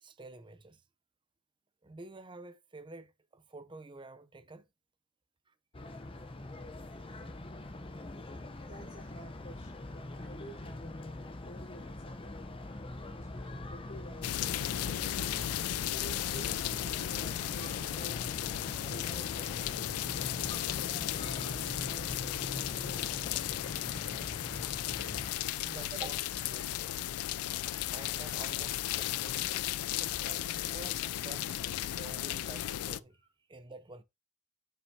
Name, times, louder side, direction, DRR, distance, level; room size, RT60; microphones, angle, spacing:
voice 1, 0.0-0.8 1.8-4.7 5.5-5.6 25.6-27.0 27.9-29.5 30.0-33.2 33.5-34.0, right 3 dB, 20° right, 0.6 m, -49 dB
sound 1, 5.7-25.3, left 2 dB, 25° left, 0.7 m, -43 dB
voice 2, 8.7-15.5 15.9-18.2 18.5-23.2, equal, 40° left, 4.0 m, -52 dB
sound 2, 14.2-33.0, left 12 dB, 85° left, 0.4 m, -35 dB
7.9 x 5.9 x 2.7 m
head